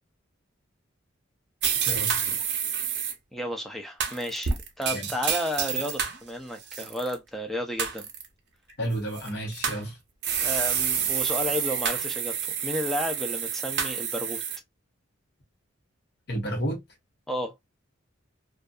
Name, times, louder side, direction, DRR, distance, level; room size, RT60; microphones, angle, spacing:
sound 1, 1.6-3.1 4.0-6.2 6.6-7.1 7.8-8.3 9.1-9.8 10.2-14.6, right 8 dB, 55° right, 0.6 m, -28 dB
voice 1, 1.8-2.5 4.9-5.1 8.8-10.0 16.3-16.8, right 1 dB, 55° left, 1.0 m, -31 dB
voice 2, 3.3-8.1 10.4-12.4 12.6-14.4 17.3-17.5, left 1 dB, ahead, 0.4 m, -32 dB
2.6 x 2.3 x 2.2 m
head